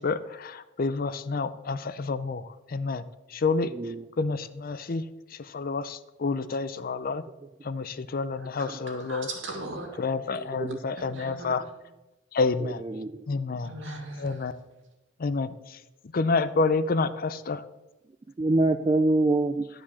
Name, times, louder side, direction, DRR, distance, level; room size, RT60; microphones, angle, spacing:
voice 1, 0.0-3.0 3.3-3.7 4.2-5.0 5.3-7.2 7.6-9.3 10.0-11.6 12.3-12.8 13.3-13.7 14.2-14.6 15.2-15.8 16.1-17.6, left 4 dB, 50° left, 0.5 m, -29 dB
voice 2, 3.7-4.0 8.7-8.8 10.3-10.8 12.6-13.3 18.4-19.7, right 2 dB, 25° right, 0.4 m, -26 dB
voice 3, 8.9-9.9 11.0-11.6 13.6-14.3, right 2 dB, 70° right, 2.4 m, -38 dB
11.5 x 5.1 x 7.0 m
head